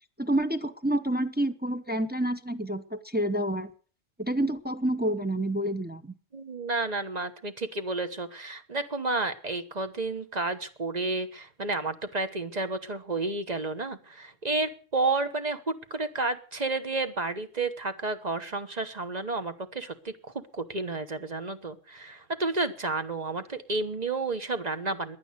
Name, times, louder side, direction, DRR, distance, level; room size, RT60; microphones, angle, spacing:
voice 1, 0.2-3.7 4.2-6.1, right 1 dB, 10° right, 6 dB, 0.8 m, -28 dB
voice 2, 6.3-25.2, right 3 dB, 35° right, 9 dB, 1.2 m, -31 dB
16.0 x 11.0 x 6.7 m, 0.41 s
omnidirectional pair, 1.3 m